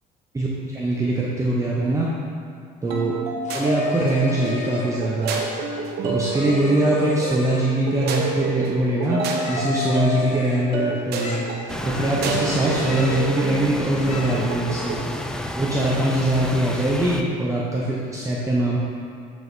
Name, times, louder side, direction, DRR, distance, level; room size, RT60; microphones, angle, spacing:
voice 1, 0.3-2.2 2.8-3.1 3.5-5.4 6.0-11.4 11.8-15.0 15.6-18.8, right 1 dB, 20° right, -6 dB, 0.7 m, -22 dB
sound 1, 2.9-15.0, right 3 dB, 75° right, 0.7 m, -28 dB
sound 2, 3.4-5.0 6.2-7.8 9.3-10.8 11.2-11.9 12.3-13.3 13.9-14.5, left 3 dB, 45° left, 0.9 m, -36 dB
sound 3, 11.7-17.2, left 1 dB, 5° left, 0.3 m, -31 dB
7.8 x 4.7 x 2.7 m, 2.2 s
cardioid pair, 110°, 17 cm